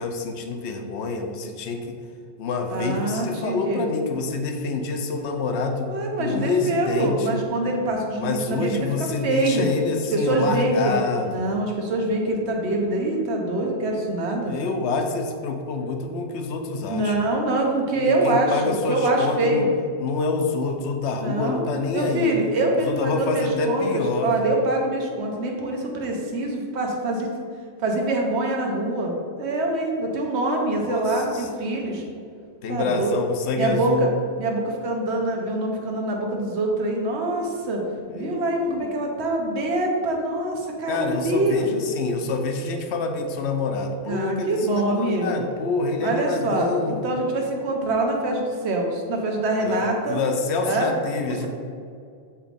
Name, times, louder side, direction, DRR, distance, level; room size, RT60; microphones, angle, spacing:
voice 1, 0.0-2.0 2.4-7.4 8.2-11.4 14.4-17.1 18.0-19.7 20.0-22.4 22.8-24.3 30.7-31.5 31.8-32.0 32.6-34.1 38.1-38.9 40.9-47.0 49.6-51.5, left 3 dB, 70° left, 4 dB, 0.9 m, -27 dB
voice 2, 2.7-3.8 5.9-9.7 10.1-14.5 16.9-19.7 21.2-21.6 21.9-27.3 27.8-32.0 32.7-33.2 33.6-34.1 34.4-37.8 38.1-41.7 44.0-45.4 46.0-50.2 50.6-50.9 51.3-51.5, right 2 dB, 70° right, 1 dB, 1.2 m, -25 dB
7.3 x 3.0 x 5.1 m, 2.3 s
omnidirectional pair, 1.2 m